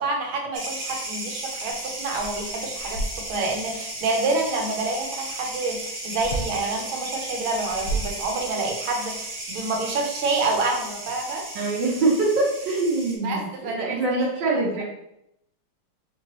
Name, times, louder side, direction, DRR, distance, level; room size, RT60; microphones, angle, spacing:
voice 1, 0.0-11.4 13.2-14.2 14.5-14.6, right 3 dB, 85° right, 1 dB, 1.6 m, -28 dB
sound 1, 0.5-13.2, right 1 dB, 50° right, 1.1 m, -35 dB
sound 2, 1.7-1.8 2.1-3.6 6.2-6.7 7.5-8.7, right 2 dB, 70° left, 1.3 m, -31 dB
voice 2, 11.5-14.8, right 2 dB, 65° right, -6 dB, 1.4 m, -24 dB
4.6 x 2.9 x 2.9 m, 0.79 s
omnidirectional pair, 2.2 m